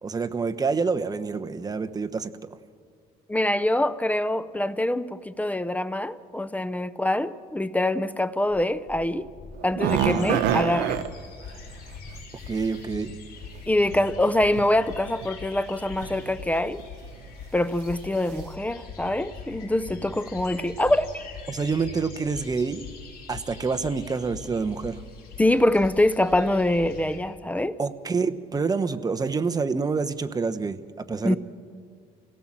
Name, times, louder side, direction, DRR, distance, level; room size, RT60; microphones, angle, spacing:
voice 1, 0.0-2.6 10.1-10.4 12.5-13.2 21.5-22.8 23.3-25.0 27.8-31.4, right 4 dB, 20° right, 1.0 m, -27 dB
voice 2, 3.3-9.3 9.6-11.0 13.7-16.8 17.5-21.3 25.4-27.8 31.2-31.4, left 1 dB, 10° left, 0.6 m, -24 dB
Purr, 8.4-14.7 15.4-15.5, left 2 dB, 40° left, 6.0 m, -49 dB
sound 1, 9.6-11.1 13.2-13.3 14.3-14.7 15.0-15.3 16.0-16.3 16.7-16.9 17.3-17.4, right 10 dB, 85° right, 0.9 m, -25 dB
sound 2, 9.8-27.2, left 5 dB, 60° left, 5.9 m, -42 dB
28.0 x 17.5 x 7.5 m
cardioid pair, 110°, 17 cm